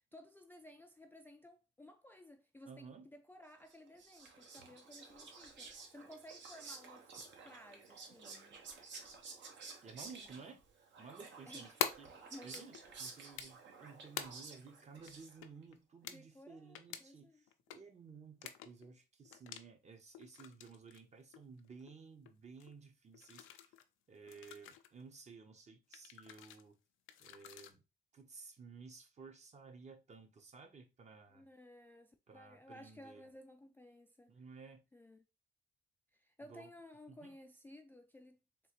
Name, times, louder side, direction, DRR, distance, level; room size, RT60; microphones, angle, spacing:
voice 1, 0.1-8.8 10.1-10.5 11.5-11.7 12.2-12.9 16.0-17.4 31.3-34.3 34.9-35.3 36.1-38.4, left 1 dB, 10° left, 0.3 m, -57 dB
voice 2, 2.7-3.1 5.2-5.3 9.8-10.6 11.0-17.5 17.7-23.7 24.1-26.8 27.2-27.8 28.1-31.5 32.3-33.2 34.3-34.8 36.5-36.7 37.1-37.3, right 5 dB, 35° right, 0.7 m, -55 dB
Whispering, 3.7-15.6, right 4 dB, 65° right, 0.8 m, -53 dB
sound 1, 11.8-11.9 12.5-12.8 13.4-13.8 14.2-14.3 14.6-14.7 15.1-15.2 15.4-15.8 16.0-16.2 16.7-17.0 17.5-17.8 18.4-18.9 19.3-19.6 20.1-21.0 21.3-21.9 22.3-22.4 22.6-22.7 23.1-23.8 24.3-24.9 25.9-26.6 27.1-27.7, left 10 dB, 85° left, 0.4 m, -44 dB
3.7 x 2.4 x 2.9 m
cardioid pair, 90°, 20 cm